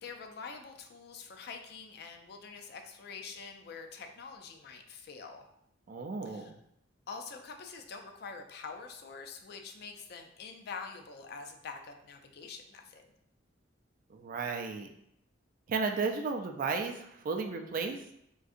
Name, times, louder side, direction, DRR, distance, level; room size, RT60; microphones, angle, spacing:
voice 1, 0.0-5.4 6.2-6.5 7.1-13.0, left 5 dB, 60° left, 5 dB, 0.4 m, -45 dB
voice 2, 5.9-6.5 14.1-14.9 15.7-18.0, right 4 dB, 50° right, 4 dB, 0.3 m, -34 dB
3.7 x 2.6 x 2.4 m, 0.75 s
head